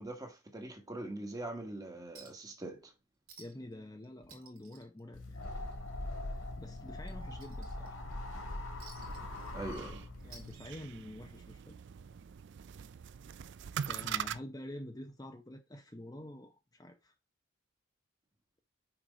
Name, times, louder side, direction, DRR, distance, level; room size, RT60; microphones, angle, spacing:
voice 1, 0.0-2.9 9.5-10.0, right 2 dB, 15° right, 1.5 m, -42 dB
Chink clink, 2.1-2.5 2.8-2.9 3.3-3.7 4.0-5.7 6.1-6.2 6.7-8.1 8.8-9.9 10.2-11.1 12.2-12.3, right 5 dB, 70° right, 2.3 m, -56 dB
voice 2, 3.4-5.7 6.3-8.0 10.2-11.7 13.9-17.1, left 1 dB, 15° left, 0.7 m, -47 dB
sound 1, 5.1-10.5, left 1 dB, 70° left, 2.3 m, -42 dB
sound 2, 9.0-14.4, right 8 dB, 55° right, 0.3 m, -42 dB
6.2 x 4.7 x 5.0 m
head